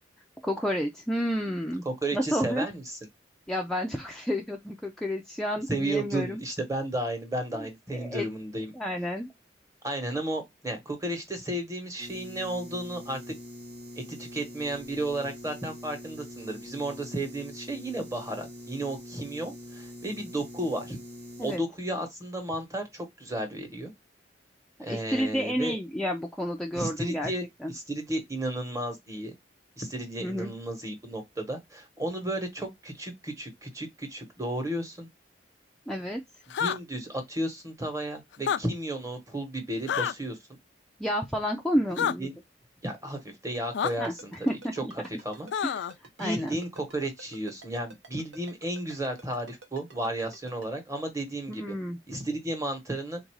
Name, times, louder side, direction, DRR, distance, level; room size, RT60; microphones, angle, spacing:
voice 1, 0.4-1.8 2.1-2.7 3.5-6.4 7.5-7.7 7.9-8.3 8.7-9.3 21.4-21.6 24.9-27.3 27.6-27.7 30.2-30.5 35.9-36.2 41.0-42.3 44.0-44.9 45.6-45.7 46.2-46.6 51.5-52.0, equal, 5° left, 0.4 m, -30 dB
voice 2, 1.8-3.0 5.7-8.7 9.8-13.2 14.0-21.0 21.4-23.9 24.8-25.8 26.7-29.3 29.8-35.1 36.6-40.4 41.9-42.3 42.8-44.3 45.1-45.5 46.2-51.6 52.1-53.2, right 1 dB, 15° right, 1.2 m, -33 dB
sound 1, 12.0-21.6, left 1 dB, 60° right, 1.1 m, -44 dB
sound 2, 36.5-36.8 38.3-38.6 39.9-40.1 42.0-42.1 43.7-43.9 45.5-45.9, left 8 dB, 70° left, 0.3 m, -27 dB
Ringtone, 43.9-50.7, right 2 dB, 85° right, 1.1 m, -49 dB
3.6 x 2.6 x 4.6 m
head